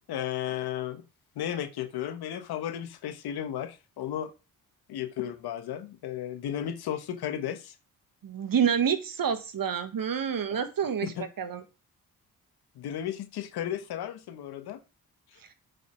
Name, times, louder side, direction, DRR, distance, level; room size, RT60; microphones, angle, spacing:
voice 1, 0.1-1.0 1.3-4.3 4.9-7.7 11.0-11.1 12.7-14.8, left 10 dB, 90° left, 10 dB, 1.3 m, -34 dB
voice 2, 8.2-11.6, right 7 dB, 60° right, 8 dB, 1.6 m, -28 dB
9.1 x 5.4 x 6.3 m, 0.31 s
supercardioid pair, 50°, 37 cm